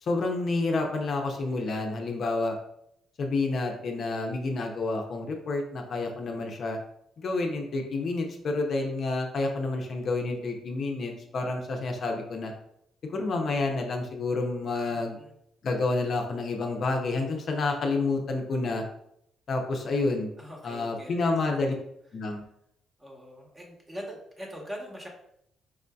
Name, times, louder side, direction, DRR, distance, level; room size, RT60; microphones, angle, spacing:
voice 1, 0.0-2.6 3.2-6.8 7.2-12.5 13.0-15.2 15.6-18.8 19.5-20.3 20.6-21.7 22.1-22.4, left 3 dB, 55° left, 2 dB, 0.5 m, -29 dB
voice 2, 14.9-15.3 20.4-21.2 21.5-21.6 23.0-25.1, equal, 20° right, -1 dB, 1.0 m, -42 dB
4.7 x 2.6 x 2.3 m, 0.76 s
cardioid pair, 90°, 0 cm